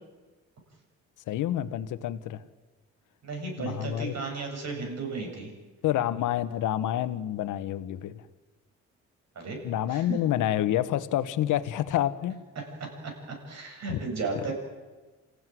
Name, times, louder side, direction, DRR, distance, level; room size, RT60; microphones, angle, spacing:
voice 1, 1.3-2.4 3.6-4.1 5.8-8.3 9.6-12.4 13.9-14.0 14.3-14.5, left 12 dB, 85° left, 13 dB, 1.3 m, -28 dB
voice 2, 3.2-5.5 9.3-9.6 9.9-10.2 13.5-14.5, right 4 dB, 60° right, 2 dB, 7.9 m, -34 dB
28.0 x 16.0 x 9.4 m, 1.3 s
cardioid pair, 90°, 30 cm